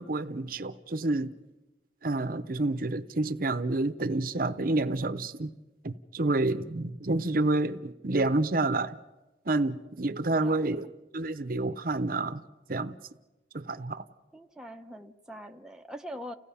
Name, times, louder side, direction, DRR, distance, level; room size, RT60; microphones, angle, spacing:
voice 1, 0.0-1.3 2.0-5.5 5.8-9.0 9.5-10.9 11.1-12.4 12.7-12.9 13.5-14.0, right 2 dB, 50° right, 0.7 m, -29 dB
voice 2, 10.4-10.9 14.3-16.3, equal, 5° right, 0.7 m, -43 dB
30.0 x 17.0 x 5.7 m
head